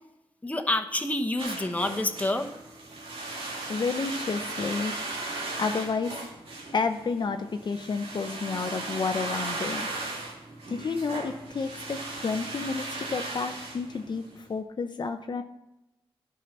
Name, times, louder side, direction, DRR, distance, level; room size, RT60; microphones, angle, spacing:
voice 1, 0.4-2.5, left 1 dB, 15° left, 4 dB, 1.1 m, -28 dB
sound 1, 1.4-14.4, right 2 dB, 75° right, 2.4 m, -37 dB
voice 2, 3.2-5.0 5.6-6.2 6.7-9.9 10.7-15.4, left 4 dB, 50° left, 7 dB, 0.6 m, -31 dB
11.0 x 5.6 x 6.6 m, 0.94 s
cardioid pair, 75°, 10 cm